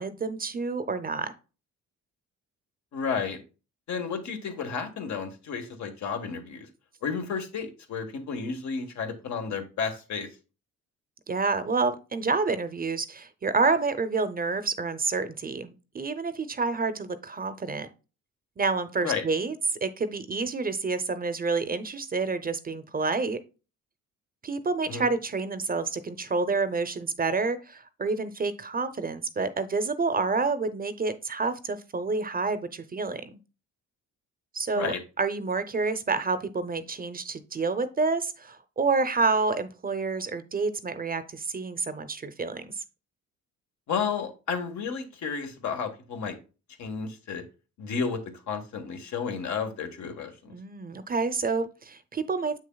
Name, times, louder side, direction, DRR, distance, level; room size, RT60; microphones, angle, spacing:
voice 1, 0.0-1.3 11.3-17.9 18.6-23.4 24.4-33.3 34.5-42.8 50.5-52.6, right 4 dB, 30° right, 12 dB, 0.7 m, -28 dB
voice 2, 2.9-3.4 3.9-6.7 7.0-10.3 19.0-19.2 24.9-25.1 34.7-35.0 43.9-46.4 46.8-47.4 47.8-48.2 48.5-50.5, left 6 dB, 70° left, 5 dB, 1.5 m, -32 dB
7.5 x 6.4 x 2.3 m, 0.33 s
cardioid pair, 90°, 30 cm